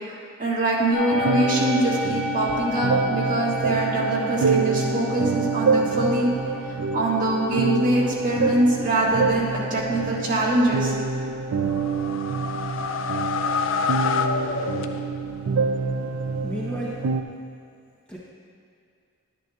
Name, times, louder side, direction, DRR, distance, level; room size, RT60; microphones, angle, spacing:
voice 1, 0.4-6.3 6.9-10.9, right 1 dB, 40° right, -6 dB, 1.9 m, -23 dB
sound 1, 0.9-17.1, left 3 dB, 30° left, 1.8 m, -36 dB
sound 2, 1.1-17.2, right 4 dB, 85° right, 0.4 m, -26 dB
sound 3, 11.6-15.4, left 5 dB, 60° left, 0.4 m, -27 dB
voice 2, 16.4-17.0 18.1-18.2, right 1 dB, 5° left, -6 dB, 0.8 m, -32 dB
12.0 x 10.5 x 2.4 m, 2.4 s
head